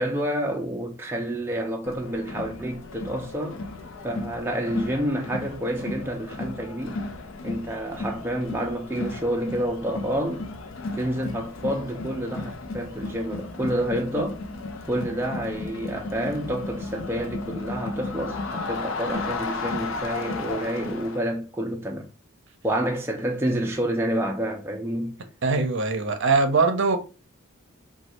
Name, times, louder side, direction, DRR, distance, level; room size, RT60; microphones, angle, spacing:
voice 1, 0.0-3.6 4.0-7.0 7.4-10.5 10.9-14.4 14.9-22.1 22.6-25.2, right 1 dB, 10° right, 0.4 m, -28 dB
Crowd, 1.8-21.3, left 3 dB, 65° left, 0.5 m, -34 dB
voice 2, 25.4-27.0, right 4 dB, 60° right, 0.6 m, -21 dB
3.1 x 2.3 x 3.0 m
head